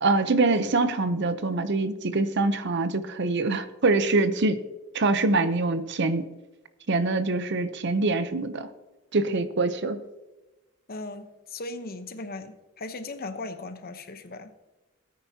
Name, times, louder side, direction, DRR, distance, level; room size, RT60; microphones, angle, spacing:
voice 1, 0.0-4.6 4.9-6.2 6.9-8.7 9.1-10.0, right 3 dB, 55° right, 11 dB, 0.7 m, -24 dB
voice 2, 10.9-14.5, left 2 dB, 45° left, 9 dB, 0.9 m, -38 dB
17.5 x 9.4 x 2.8 m, 1.1 s
head